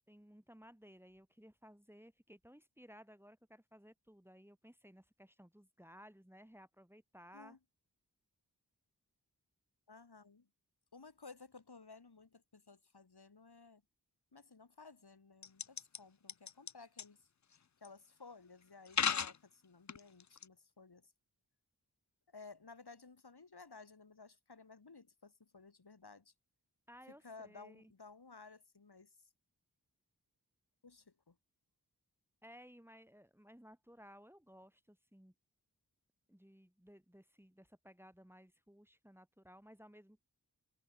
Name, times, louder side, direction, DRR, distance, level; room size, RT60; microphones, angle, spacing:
voice 1, 0.1-7.6 26.9-27.9 32.4-35.3 36.3-40.2, equal, 5° right, 4.1 m, -59 dB
voice 2, 9.9-10.5 10.9-13.8 14.3-17.3 17.8-21.1 22.3-26.3 27.1-29.1 30.8-31.4, left 4 dB, 80° left, 4.7 m, -57 dB
sound 1, 15.4-16.0 16.3-16.7 17.0-17.1 17.8-17.9 18.9-19.4 19.9-20.4, left 7 dB, 50° left, 0.6 m, -34 dB
wide cardioid pair, 60°, 38 cm